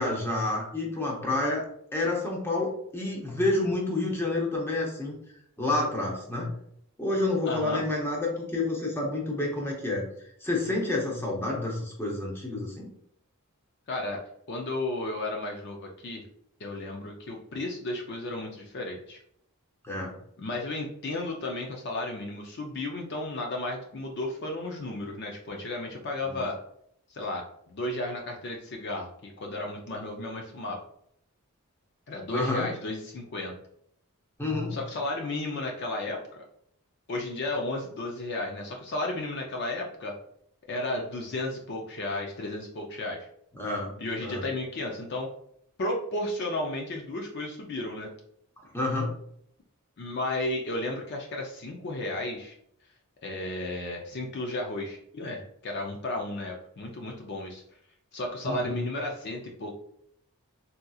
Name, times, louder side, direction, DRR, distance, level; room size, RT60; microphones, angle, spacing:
voice 1, 0.0-5.1 5.6-6.5 7.0-10.0 10.4-12.9 19.8-20.1 26.3-26.5 32.3-32.7 34.4-34.7 43.5-43.9 44.2-44.4 48.7-49.1 58.4-58.7, left 2 dB, 10° left, -3 dB, 0.7 m, -29 dB
voice 2, 7.5-7.8 13.9-14.2 14.5-16.2 16.6-19.2 20.4-26.6 27.1-30.8 32.1-33.5 34.7-36.4 37.1-40.1 40.7-43.3 44.0-45.3 45.8-48.1 50.0-52.6 53.2-57.6 58.1-59.7, left 2 dB, 50° left, 1 dB, 0.5 m, -33 dB
3.7 x 2.8 x 2.3 m, 0.69 s
head